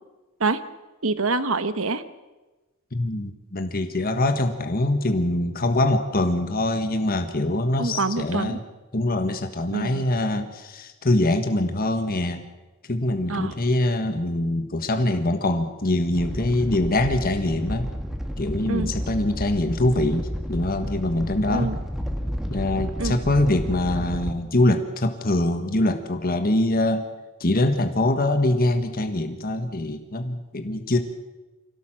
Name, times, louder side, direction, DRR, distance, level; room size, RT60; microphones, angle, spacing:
voice 1, 1.0-2.0 7.8-8.6 9.7-10.1 13.3-13.5 18.7-18.9 21.5-21.8 23.0-23.2, right 3 dB, 65° right, 12 dB, 1.3 m, -25 dB
voice 2, 2.9-8.6 8.9-12.4 12.9-17.9 18.4-21.7 22.5-27.0 27.4-31.0, left 1 dB, 40° left, 7 dB, 1.5 m, -23 dB
Animal, 16.1-24.3, equal, ahead, 1.8 m, -31 dB
26.0 x 17.0 x 7.6 m, 1.1 s
head